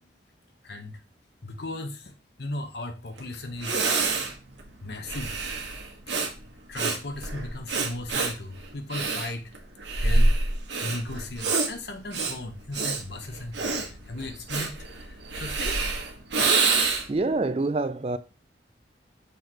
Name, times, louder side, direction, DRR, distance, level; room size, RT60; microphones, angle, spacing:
voice 1, 0.6-1.0 1.4-2.1 2.4-3.9 4.8-5.3 6.7-9.5 10.0-10.3 10.8-15.8, left 2 dB, 65° left, 1.0 m, -36 dB
Breathing, 3.2-3.3 3.6-17.2, right 3 dB, 80° right, 1.3 m, -27 dB
voice 2, 17.1-18.2, right 3 dB, 30° right, 0.4 m, -26 dB
6.5 x 3.3 x 4.4 m
head